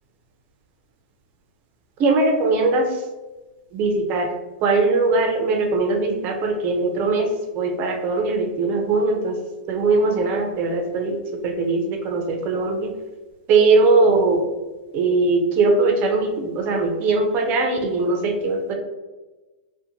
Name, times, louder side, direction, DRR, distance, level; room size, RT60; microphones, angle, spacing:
voice 1, 2.0-3.1 3.7-4.3 4.6-9.4 9.7-12.9 13.5-14.4 14.9-18.7, right 3 dB, 40° right, 3 dB, 0.5 m, -20 dB
2.4 x 2.2 x 2.8 m, 1.2 s
hypercardioid pair, 115°, 5 cm